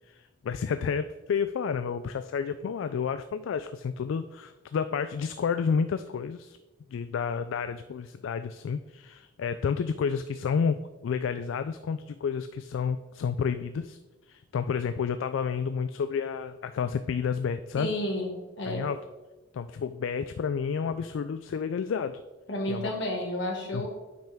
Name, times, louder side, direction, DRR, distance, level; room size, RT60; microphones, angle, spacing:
voice 1, 0.1-6.6 6.9-14.0 14.3-17.9 18.7-19.0 19.5-22.2 22.7-22.9 23.7-23.8, left 6 dB, 80° left, 11 dB, 0.3 m, -30 dB
voice 2, 17.8-18.9 22.5-23.9, left 1 dB, 65° left, 0 dB, 1.8 m, -31 dB
8.9 x 5.6 x 3.5 m, 1.1 s
head